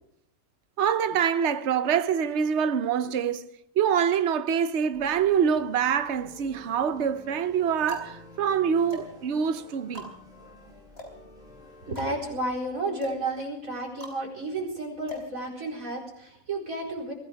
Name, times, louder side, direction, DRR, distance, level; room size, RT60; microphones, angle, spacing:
voice 1, 0.8-3.5 3.8-10.1, right 7 dB, 55° right, 1.1 m, -25 dB
sound 1, 4.9-12.4, left 1 dB, 5° right, 7.5 m, -51 dB
sound 2, 7.9-16.1, equal, 45° left, 4.4 m, -45 dB
voice 2, 11.8-17.1, right 2 dB, 70° right, 4.9 m, -32 dB
24.0 x 16.0 x 3.5 m
omnidirectional pair, 1.5 m